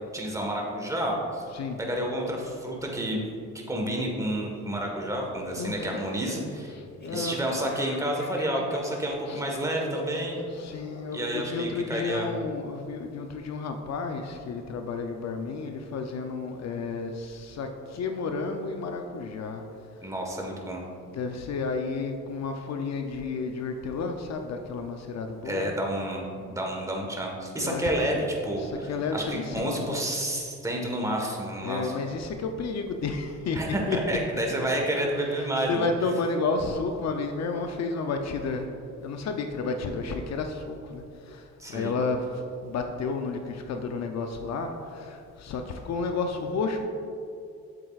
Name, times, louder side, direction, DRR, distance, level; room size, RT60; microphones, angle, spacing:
voice 1, 0.1-1.4 1.8-3.2 3.7-6.7 7.1-10.4 11.1-12.3 20.0-20.8 25.4-31.9 33.5-35.9 41.6-41.9, right 1 dB, 10° right, -1 dB, 1.4 m, -30 dB
voice 2, 1.5-1.8 5.5-6.0 6.6-7.4 9.3-9.5 10.5-19.6 21.1-25.7 27.6-28.2 28.6-30.0 31.6-34.2 35.2-38.7 39.0-46.8, left 4 dB, 60° left, 5 dB, 0.6 m, -32 dB
Laughter, 4.5-13.0, left 2 dB, 35° left, 1.2 m, -43 dB
7.7 x 7.6 x 2.4 m, 2.5 s
cardioid pair, 90°, 30 cm